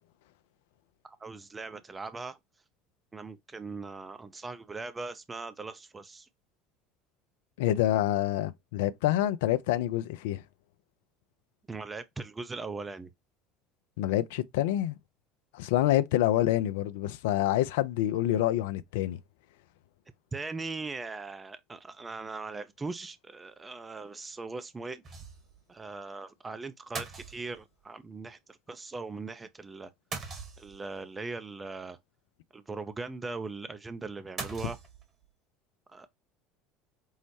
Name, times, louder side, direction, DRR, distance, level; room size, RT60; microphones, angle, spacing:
voice 1, 1.0-2.4 3.1-6.3 11.7-13.1 20.3-25.0 25.7-29.9 30.6-32.0 32.5-34.8 35.9-36.1, right 3 dB, 20° right, 0.5 m, -40 dB
voice 2, 7.6-10.4 14.0-15.0 15.5-19.2, left 13 dB, 65° left, 0.3 m, -27 dB
sound 1, 25.0-25.6 25.9-26.0 26.9-27.8 30.1-31.0 34.4-35.3, right 4 dB, 40° right, 1.3 m, -40 dB
5.4 x 2.0 x 3.1 m
figure-of-eight pair, 65°, 0 cm